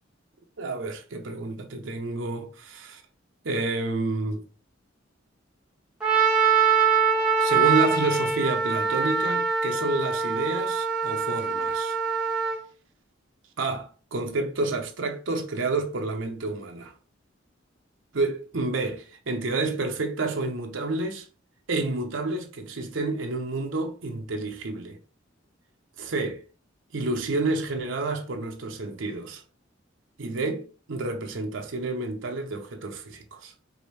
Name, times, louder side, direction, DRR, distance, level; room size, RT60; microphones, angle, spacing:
voice 1, 0.6-3.0 3.4-4.4 7.4-12.0 13.6-16.9 18.1-21.3 21.7-25.0 26.0-26.4 26.9-29.4 30.2-33.5, right 3 dB, 80° right, 0.7 m, -29 dB
Trumpet, 6.0-12.6, right 5 dB, 5° right, 1.1 m, -23 dB
4.8 x 2.6 x 3.2 m
head